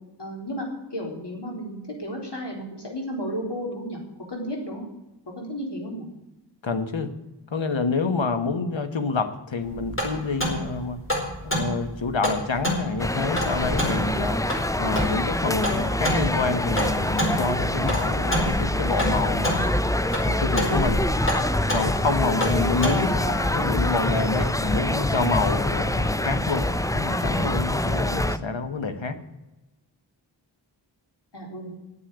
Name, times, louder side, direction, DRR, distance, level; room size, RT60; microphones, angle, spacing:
voice 1, 0.2-4.0 4.3-4.9 5.4-6.1 22.9-23.6 31.3-31.8, equal, 65° left, 0 dB, 3.9 m, -33 dB
voice 2, 6.6-7.1 7.5-11.0 11.4-14.4 14.8-19.8 20.2-21.0 21.7-29.2, left 4 dB, 80° left, 9 dB, 1.3 m, -27 dB
sound 1, 9.6-23.0, equal, 30° left, 4.7 m, -29 dB
sound 2, 13.0-28.4, left 1 dB, 10° left, 0.5 m, -25 dB
9.8 x 8.4 x 9.9 m, 0.99 s
wide cardioid pair, 65°, 45 cm